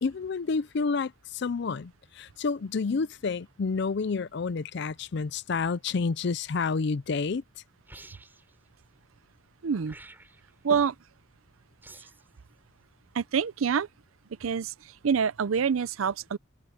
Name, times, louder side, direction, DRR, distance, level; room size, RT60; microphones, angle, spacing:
voice 1, 0.0-7.4 10.7-10.8, left 4 dB, 60° left, 0.5 m, -29 dB
sound 1, 7.9-8.5 9.8-10.5 11.8-12.3, right 2 dB, 10° right, 3.4 m, -50 dB
voice 2, 9.6-10.0 10.6-10.9 13.1-13.9 14.4-14.7 15.0-16.4, right 6 dB, 90° right, 0.5 m, -26 dB
head